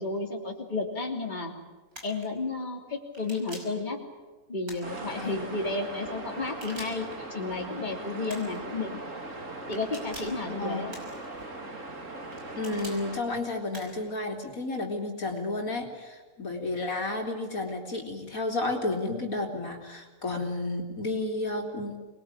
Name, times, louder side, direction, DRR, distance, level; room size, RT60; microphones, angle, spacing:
voice 1, 0.0-1.5 2.0-4.0 4.5-9.0 9.7-10.9, left 3 dB, 30° left, 0 dB, 3.2 m, -32 dB
sound 1, 1.9-2.3 3.1-3.8 4.6-5.3 6.4-7.2 8.3-8.7 9.7-10.4 10.9-11.5 12.3-13.0 13.7-14.1, right 1 dB, 75° right, 6.1 m, -45 dB
sound 2, 4.8-13.2, right 2 dB, 55° right, 3.2 m, -40 dB
voice 2, 10.6-10.9 12.6-22.0, left 2 dB, 65° left, 2 dB, 3.7 m, -32 dB
26.5 x 21.0 x 9.8 m, 1.3 s
omnidirectional pair, 1.5 m